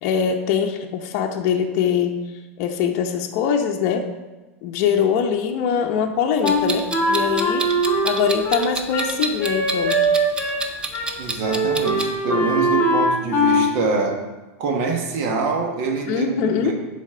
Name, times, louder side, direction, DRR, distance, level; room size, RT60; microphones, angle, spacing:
voice 1, 0.0-2.2 2.6-4.1 4.6-7.7 8.0-10.0 16.1-16.7, left 7 dB, 50° left, 3 dB, 0.7 m, -22 dB
Wind instrument woodwind instrument, 6.4-10.7 10.9-11.1 11.4-13.7, right 1 dB, 25° left, 1.6 m, -21 dB
Clock, 6.4-12.1, right 2 dB, 15° right, 0.6 m, -29 dB
voice 2, 11.2-14.2 14.6-16.7, right 4 dB, 55° right, 2 dB, 1.4 m, -25 dB
10.0 x 4.2 x 3.7 m, 1.2 s
hypercardioid pair, 125°, 8 cm